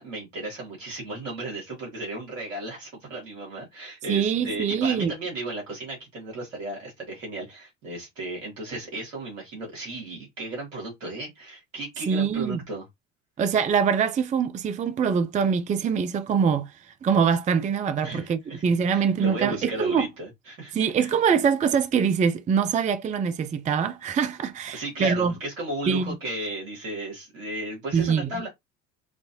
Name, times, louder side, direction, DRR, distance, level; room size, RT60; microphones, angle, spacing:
voice 1, 0.0-12.8 18.0-21.2 24.7-28.5, right 2 dB, 80° right, 2.7 m, -35 dB
voice 2, 4.1-5.1 12.1-12.6 13.4-16.7 17.0-20.1 20.7-25.3 25.9-26.2 27.9-28.3, right 6 dB, 20° right, 0.5 m, -24 dB
5.0 x 2.7 x 2.7 m
hypercardioid pair, 65°, 38 cm